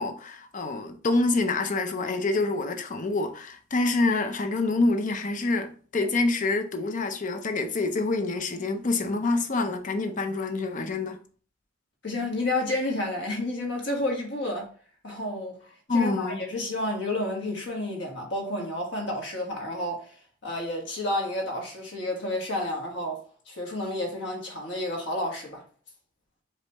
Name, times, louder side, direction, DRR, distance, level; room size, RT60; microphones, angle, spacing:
voice 1, 0.0-11.2 15.9-16.4, left 3 dB, 45° left, 0.6 m, -26 dB
voice 2, 12.0-14.7 15.0-15.5 15.9-20.2 20.4-25.6, left 1 dB, 65° left, 1.4 m, -30 dB
4.8 x 3.4 x 2.9 m
head